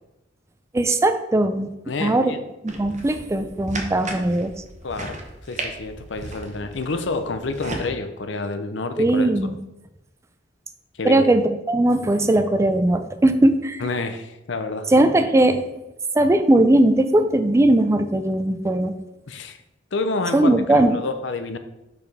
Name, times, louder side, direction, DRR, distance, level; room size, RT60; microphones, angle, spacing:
voice 1, 0.7-1.7 2.0-2.3 2.6-4.5 9.0-9.6 11.0-13.8 14.9-15.6 16.1-19.0 20.3-21.0, right 1 dB, 15° right, 9 dB, 0.4 m, -19 dB
voice 2, 1.9-2.4 4.8-5.2 5.5-9.3 11.0-11.3 13.8-14.9 19.3-19.6 19.9-21.6, left 3 dB, 70° left, 9 dB, 0.6 m, -28 dB
sound 1, 2.7-7.9, right 2 dB, 40° right, 1.0 m, -35 dB
4.9 x 4.8 x 5.4 m, 0.93 s
head